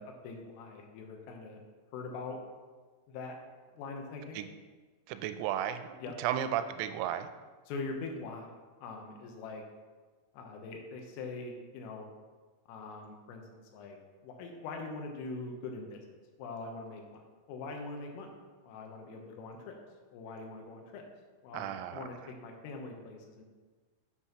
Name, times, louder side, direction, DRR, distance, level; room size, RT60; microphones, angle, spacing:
voice 1, 0.0-1.6 1.9-2.4 3.1-3.4 3.8-4.5 6.0-6.2 7.7-8.5 8.8-9.6 10.3-12.1 12.7-13.4 13.7-14.0 14.2-16.1 16.4-17.2 17.5-18.3 18.6-19.8 20.1-21.0 21.4-23.4, left 3 dB, 80° left, 2 dB, 3.6 m, -42 dB
voice 2, 5.1-7.3 21.5-22.1, right 10 dB, 90° right, 10 dB, 3.3 m, -34 dB
10.0 x 8.7 x 3.0 m, 1.4 s
omnidirectional pair, 6.0 m